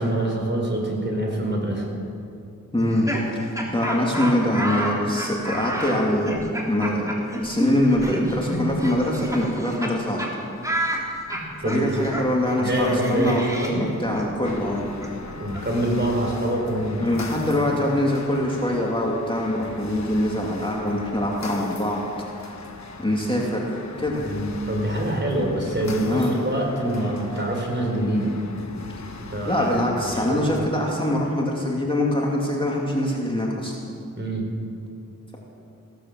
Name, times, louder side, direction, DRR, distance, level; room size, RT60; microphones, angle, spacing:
voice 1, 0.0-1.8 3.6-3.7 11.6-11.8 12.6-13.8 15.4-17.2 17.6-17.7 24.3-28.3 29.3-30.5 34.2-34.5, right 1 dB, 35° right, 0 dB, 4.3 m, -25 dB
voice 2, 2.7-3.1 3.7-7.1 7.4-10.3 11.6-14.8 17.0-22.0 23.0-24.2 26.0-26.4 29.4-33.8, left 1 dB, 15° left, -2 dB, 2.5 m, -23 dB
Laughter, 2.8-9.9 10.2-10.3 10.6-16.4, equal, 10° right, 3.1 m, -31 dB
sound 1, 14.4-30.6, left 3 dB, 55° left, 1.4 m, -40 dB
16.0 x 12.0 x 7.5 m, 2.6 s
cardioid pair, 60°, 34 cm